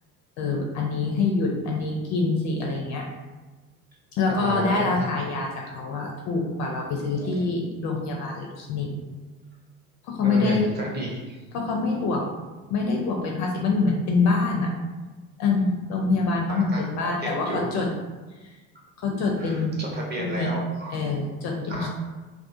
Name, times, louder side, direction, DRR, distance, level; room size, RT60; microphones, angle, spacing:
voice 1, 0.4-3.1 4.2-8.9 10.1-10.7 11.5-12.3 12.7-14.7 15.4-17.9 19.0-19.9 20.2-20.6 20.9-21.9, left 3 dB, 40° left, 0 dB, 0.4 m, -25 dB
voice 2, 4.3-5.0 7.2-7.3 10.2-11.4 16.5-17.7 19.1-21.0 21.7-21.9, right 1 dB, 25° right, -3 dB, 0.6 m, -33 dB
2.3 x 2.3 x 2.5 m, 1.2 s
hypercardioid pair, 70°, 44 cm